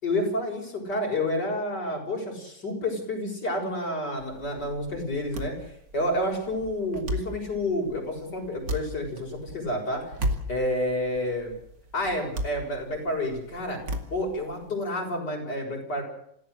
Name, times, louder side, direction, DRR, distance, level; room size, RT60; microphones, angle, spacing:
voice 1, 0.0-5.5 5.9-10.0 10.5-11.5 11.9-13.8 14.1-16.0, left 1 dB, 70° left, 1 dB, 7.1 m, -29 dB
sound 1, 4.2-14.7, equal, 85° right, 3.1 m, -36 dB
27.0 x 16.5 x 8.0 m, 0.74 s
omnidirectional pair, 1.9 m